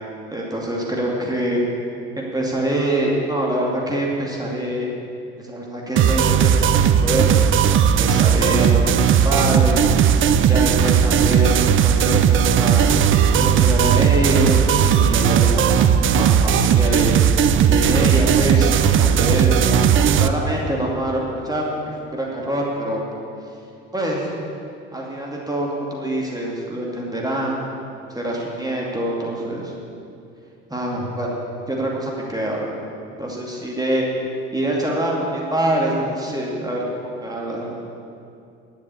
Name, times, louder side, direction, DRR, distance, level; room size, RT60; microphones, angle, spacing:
voice 1, 0.0-1.6 2.2-4.9 5.4-8.9 9.2-9.9 10.4-12.9 13.3-17.2 17.7-23.0 23.9-24.3 24.9-27.7 28.1-29.7 30.7-31.4 31.7-32.7 33.2-34.0 34.5-37.8, right 1 dB, 10° right, -3 dB, 2.5 m, -25 dB
sound 1, 6.0-20.3, right 8 dB, 40° right, 0.6 m, -16 dB
11.0 x 7.4 x 8.4 m, 2.5 s
hypercardioid pair, 65°, 32 cm